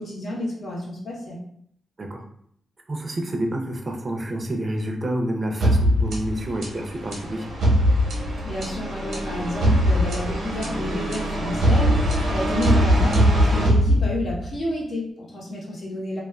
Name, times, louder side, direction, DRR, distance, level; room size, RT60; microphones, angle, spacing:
voice 1, 0.0-1.4 8.4-16.2, left 1 dB, 65° left, -4 dB, 0.9 m, -30 dB
voice 2, 2.9-7.5, right 1 dB, 35° right, 2 dB, 0.5 m, -28 dB
sound 1, 5.6-14.5, equal, 85° right, 0.8 m, -21 dB
2.3 x 2.3 x 2.2 m, 0.65 s
cardioid pair, 70°, 0 cm